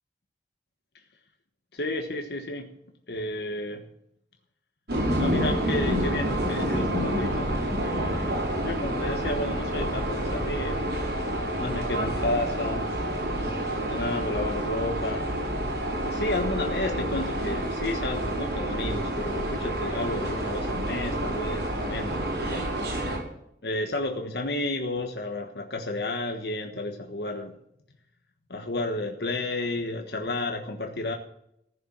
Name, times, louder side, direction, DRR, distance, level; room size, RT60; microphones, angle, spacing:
voice 1, 1.7-2.7 3.1-3.8 5.2-7.5 7.8-10.8 11.6-12.9 13.4-15.3 16.0-22.7 23.6-27.5 28.5-31.2, left 2 dB, 70° left, 3 dB, 1.4 m, -32 dB
sound 1, 4.9-23.2, right 1 dB, 70° right, 4.9 m, -28 dB
14.5 x 6.7 x 8.7 m, 0.76 s
head